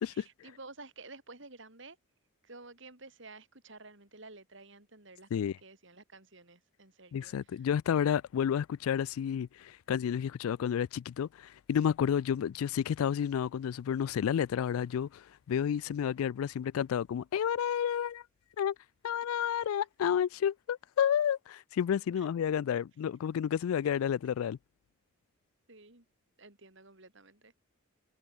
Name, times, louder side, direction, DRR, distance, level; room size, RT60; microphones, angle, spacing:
voice 1, 0.1-2.0 2.4-7.7 22.2-22.3 25.7-26.1 26.4-27.5, right 3 dB, 60° right, 3.5 m, -52 dB
voice 2, 7.1-18.2 18.6-18.7 19.0-24.6, left 8 dB, 85° left, 0.3 m, -31 dB
head